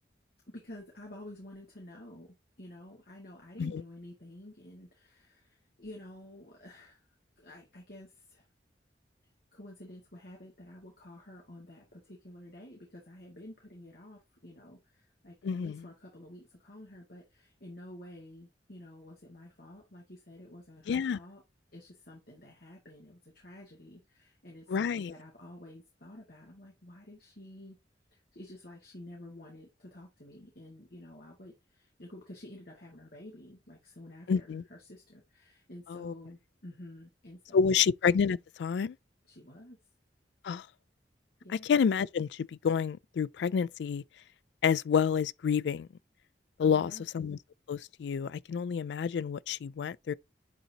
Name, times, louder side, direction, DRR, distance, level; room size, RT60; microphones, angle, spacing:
voice 1, 0.5-7.0 7.4-8.5 9.5-21.4 21.7-27.8 28.1-37.8 39.2-39.8 41.4-41.7 46.6-47.1, left 1 dB, 60° left, 2.0 m, -50 dB
voice 2, 15.4-15.8 20.9-21.2 24.7-25.1 34.3-34.6 35.9-36.1 37.5-39.0 40.4-40.7 41.6-44.0 44.6-45.9 46.6-47.4 47.7-50.1, left 6 dB, 75° left, 0.3 m, -29 dB
10.5 x 4.0 x 2.8 m
head